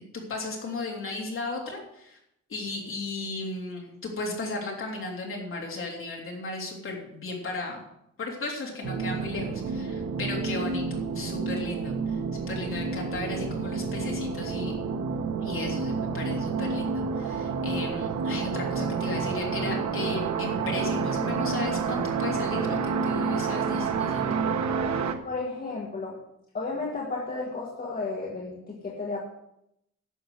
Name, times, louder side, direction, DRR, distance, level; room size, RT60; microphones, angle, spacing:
voice 1, 0.0-2.2 2.5-7.8 8.2-14.7 15.4-24.4, left 3 dB, 45° left, -1 dB, 3.3 m, -35 dB
sound 1, 8.8-25.1, right 5 dB, 70° right, 1.2 m, -29 dB
voice 2, 25.2-26.2 26.5-29.2, left 3 dB, 30° left, -2 dB, 1.8 m, -33 dB
11.0 x 7.0 x 7.9 m, 0.79 s
wide cardioid pair, 175°, 29 cm